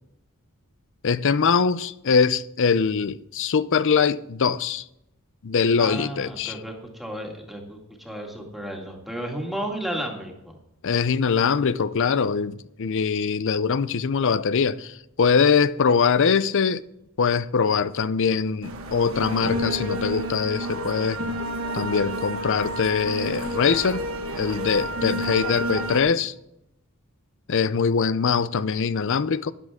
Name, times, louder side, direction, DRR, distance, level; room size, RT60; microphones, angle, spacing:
voice 1, 1.0-4.8 5.4-6.6 10.8-16.8 17.2-21.2 21.7-24.0 24.4-26.3 27.5-29.5, left 5 dB, 60° left, 0.5 m, -22 dB
voice 2, 5.8-10.6, right 1 dB, ahead, 2.2 m, -33 dB
sound 1, 18.6-26.0, right 1 dB, 65° right, 1.4 m, -30 dB
12.5 x 10.5 x 3.6 m
head